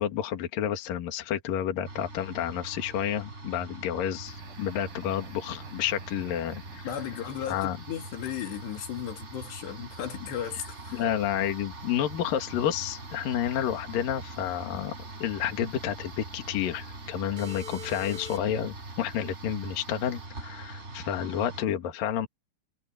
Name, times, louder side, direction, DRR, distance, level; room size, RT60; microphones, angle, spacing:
voice 1, 0.0-6.9 7.5-7.8 10.9-14.9 15.2-22.3, left 10 dB, 60° left, 3.4 m, -30 dB
sound 1, 1.8-21.7, right 2 dB, 15° right, 4.1 m, -43 dB
sound 2, 4.3-20.2, equal, 60° right, 4.2 m, -50 dB
voice 2, 6.8-11.0, left 9 dB, 85° left, 4.6 m, -35 dB
omnidirectional pair, 4.8 m